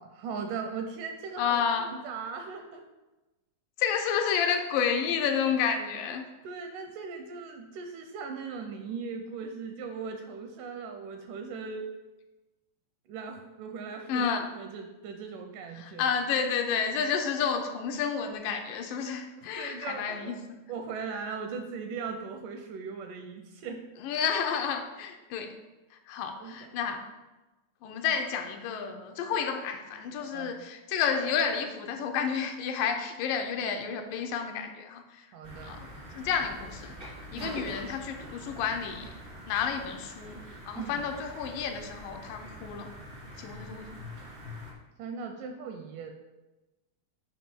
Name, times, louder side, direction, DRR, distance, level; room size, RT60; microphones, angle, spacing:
voice 1, 0.0-2.8 6.4-11.9 13.1-14.3 14.5-16.1 19.4-20.4 20.7-23.9 26.3-26.7 30.2-30.5 35.3-35.8 37.4-37.6 40.7-41.0 45.0-46.1, right 5 dB, 80° right, 4 dB, 2.0 m, -39 dB
voice 2, 1.4-1.9 3.8-6.2 14.1-14.5 15.8-20.6 24.0-25.5 26.1-27.0 27.8-35.2 35.6-35.8 36.1-36.9 37.3-39.1 39.5-40.4 40.7-42.9 43.4-43.9, left 7 dB, 80° left, 5 dB, 2.2 m, -30 dB
sound 1, 35.4-44.7, equal, 50° right, 0.6 m, -44 dB
7.4 x 5.3 x 4.4 m, 1.1 s
omnidirectional pair, 4.1 m